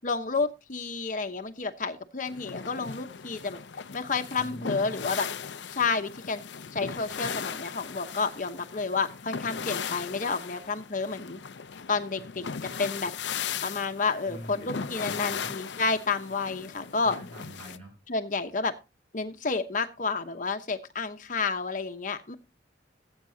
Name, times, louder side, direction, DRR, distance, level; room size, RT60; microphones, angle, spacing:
voice 1, 0.0-3.6 3.9-5.3 5.7-6.4 6.7-11.4 11.9-13.1 13.6-17.1 18.1-18.7 19.1-22.3, left 4 dB, 45° left, 6 dB, 0.9 m, -30 dB
sound 1, 2.3-17.8, left 6 dB, 75° left, 0.6 m, -38 dB
voice 2, 4.3-5.1 14.3-15.6 17.0-17.9, equal, 35° right, 0 dB, 7.1 m, -45 dB
17.5 x 8.2 x 2.7 m, 0.27 s
head